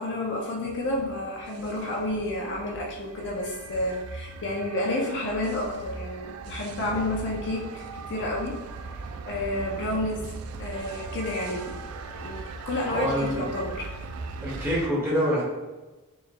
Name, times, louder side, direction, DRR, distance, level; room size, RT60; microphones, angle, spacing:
voice 1, 0.0-8.6 9.3-10.3 10.6-11.8 12.1-13.9, left 1 dB, 55° left, -1 dB, 0.5 m, -30 dB
sound 1, 0.7-14.9, right 4 dB, 75° right, 0.3 m, -39 dB
voice 2, 12.9-13.4 14.4-15.4, equal, 10° right, -7 dB, 1.2 m, -25 dB
4.6 x 3.0 x 2.2 m, 1.2 s
head